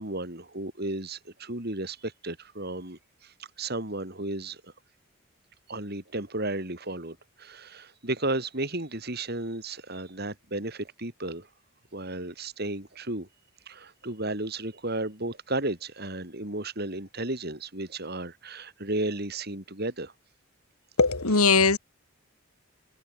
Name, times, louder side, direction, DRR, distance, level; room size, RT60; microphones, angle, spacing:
voice 1, 0.0-4.7 5.7-11.5 11.9-13.3 13.7-20.1 21.3-21.5, right 2 dB, 45° right, 3.7 m, -34 dB
voice 2, 21.0-21.8, left 4 dB, 85° left, 2.4 m, -20 dB
head